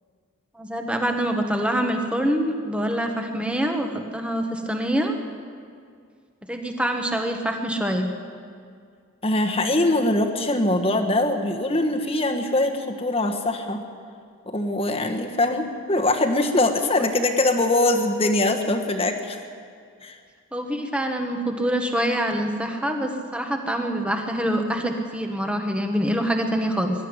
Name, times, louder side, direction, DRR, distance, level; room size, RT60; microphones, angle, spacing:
voice 1, 0.5-5.2 6.5-8.1 16.8-16.9 20.5-26.9, equal, 5° right, 4 dB, 1.4 m, -25 dB
voice 2, 9.2-13.8 14.5-19.4 20.0-20.2, left 2 dB, 25° left, 4 dB, 1.4 m, -22 dB
21.5 x 12.5 x 9.8 m, 2.2 s
head